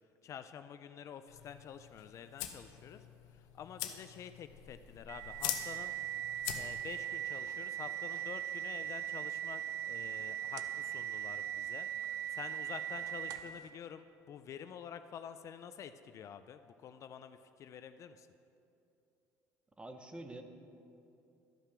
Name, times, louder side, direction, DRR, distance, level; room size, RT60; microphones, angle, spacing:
voice 1, 0.2-5.9 6.5-11.9 12.3-18.3, left 8 dB, 50° left, 10 dB, 0.4 m, -49 dB
sound 1, 1.3-7.0, left 11 dB, 85° left, 0.7 m, -44 dB
sound 2, 5.1-13.6, right 11 dB, 65° right, 0.5 m, -39 dB
voice 2, 19.8-20.4, right 1 dB, 15° right, 6 dB, 0.8 m, -46 dB
12.0 x 5.7 x 6.0 m, 2.8 s
supercardioid pair, 100°, 7 cm